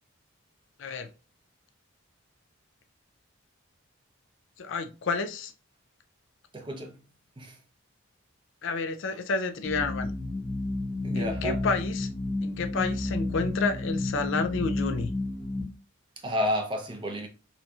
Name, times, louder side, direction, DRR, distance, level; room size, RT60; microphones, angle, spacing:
voice 1, 4.6-5.5 8.6-10.1 11.1-12.1 12.4-15.1, left 4 dB, 65° left, 0.4 m, -30 dB
voice 2, 6.5-7.0 7.4-7.6 11.0-11.6 16.2-17.3, left 1 dB, 25° right, 0.5 m, -30 dB
sound 1, 9.6-15.6, left 2 dB, 20° left, 0.7 m, -31 dB
4.3 x 2.7 x 2.3 m
head